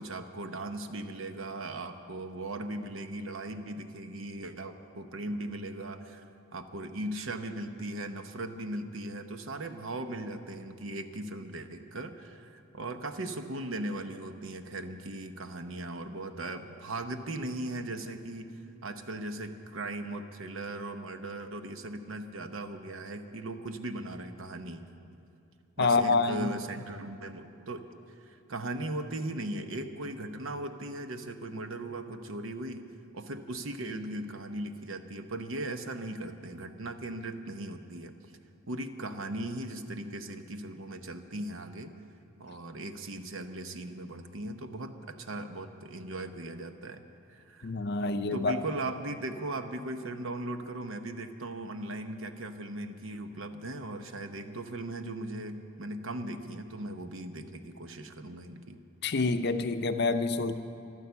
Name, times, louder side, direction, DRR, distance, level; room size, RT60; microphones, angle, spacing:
voice 1, 0.0-6.2 6.5-18.5 18.8-24.8 25.8-27.9 28.2-32.8 33.1-38.1 38.7-41.9 42.4-47.0 47.3-47.7 48.3-58.8, right 1 dB, 65° right, 8 dB, 0.9 m, -38 dB
voice 2, 25.8-26.5 47.6-48.5 59.0-60.5, left 3 dB, 50° left, 9 dB, 0.6 m, -27 dB
14.0 x 12.5 x 6.9 m, 2.8 s
head